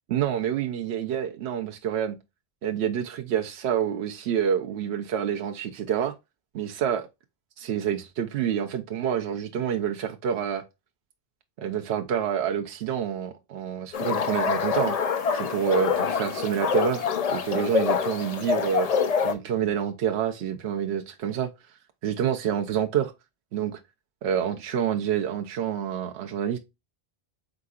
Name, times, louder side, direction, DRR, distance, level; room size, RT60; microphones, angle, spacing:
voice 1, 0.1-2.2 2.6-6.1 6.5-7.1 7.6-10.6 11.6-15.0 15.3-18.9 19.2-21.5 22.0-23.1 23.5-23.8 24.2-26.6, right 9 dB, 85° right, 0.9 m, -27 dB
sound 1, 13.9-19.3, left 6 dB, 50° left, 0.5 m, -26 dB
5.0 x 3.7 x 2.3 m
omnidirectional pair, 1.1 m